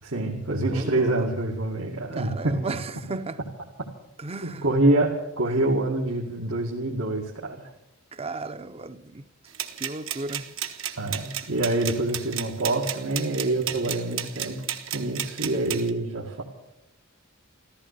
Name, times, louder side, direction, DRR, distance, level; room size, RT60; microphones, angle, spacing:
voice 1, 0.0-2.8 4.4-7.7 11.0-14.6 14.9-16.4, right 2 dB, 90° right, 2.1 m, -26 dB
voice 2, 0.7-1.3 2.1-3.4 4.2-4.8 5.5-5.6 8.1-9.3 9.8-10.5, right 3 dB, 30° right, 0.6 m, -35 dB
sound 1, 9.5-15.9, right 10 dB, 70° right, 1.1 m, -33 dB
14.5 x 14.0 x 6.8 m
head